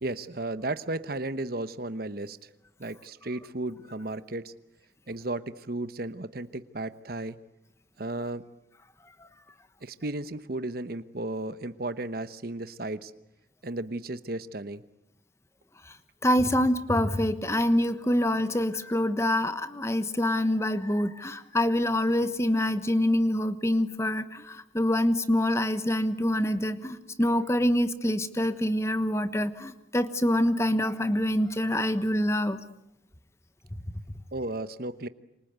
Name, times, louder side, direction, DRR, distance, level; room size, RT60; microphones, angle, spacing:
voice 1, 0.0-2.4 2.8-4.5 5.1-7.4 8.0-8.4 9.8-13.1 13.6-14.8 34.3-35.1, right 2 dB, 50° right, 13 dB, 1.0 m, -34 dB
voice 2, 16.2-32.6, left 1 dB, 15° left, 12 dB, 1.2 m, -26 dB
28.5 x 26.0 x 8.1 m, 0.82 s
head